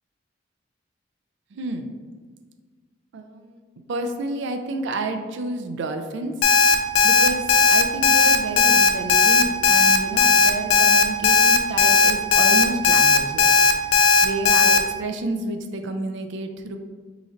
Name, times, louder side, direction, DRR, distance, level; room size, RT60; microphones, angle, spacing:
voice 1, 1.5-1.9 3.1-3.6 3.9-6.3 7.0-7.4 7.7-13.6 14.2-16.8, right 2 dB, 65° right, 6 dB, 0.3 m, -30 dB
Alarm, 6.4-14.8, left 4 dB, 80° left, 0.4 m, -16 dB
3.1 x 2.5 x 3.7 m, 1.5 s
head